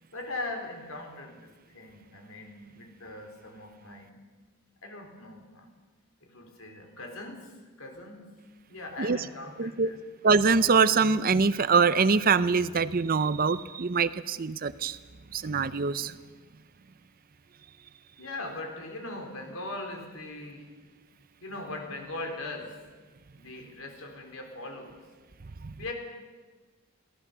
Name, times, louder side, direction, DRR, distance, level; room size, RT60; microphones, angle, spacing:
voice 1, 0.1-4.2 4.8-5.7 6.2-8.4 8.7-10.0 18.2-20.7 21.4-22.8 23.4-25.0 25.8-25.9, left 2 dB, 70° left, 3 dB, 3.8 m, -40 dB
voice 2, 9.6-9.9 10.2-15.0 15.3-16.1 25.6-25.7, right 5 dB, 40° right, 15 dB, 0.6 m, -24 dB
23.0 x 16.5 x 6.8 m, 1.4 s
head